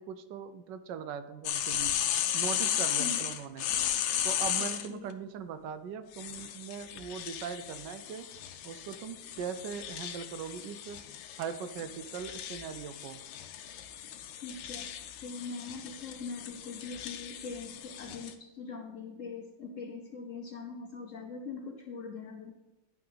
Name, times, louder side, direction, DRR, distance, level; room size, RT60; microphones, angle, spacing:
voice 1, 0.0-1.9 2.3-3.7 4.2-8.3 8.6-11.0 11.4-13.2, right 7 dB, 75° right, 11 dB, 1.2 m, -40 dB
sound 1, 1.4-4.9 6.1-18.3, left 10 dB, 85° left, 1.4 m, -35 dB
voice 2, 4.6-5.1 14.4-14.9 15.2-22.5, left 4 dB, 55° left, 4 dB, 0.9 m, -42 dB
10.0 x 6.0 x 3.9 m, 1.1 s
omnidirectional pair, 2.0 m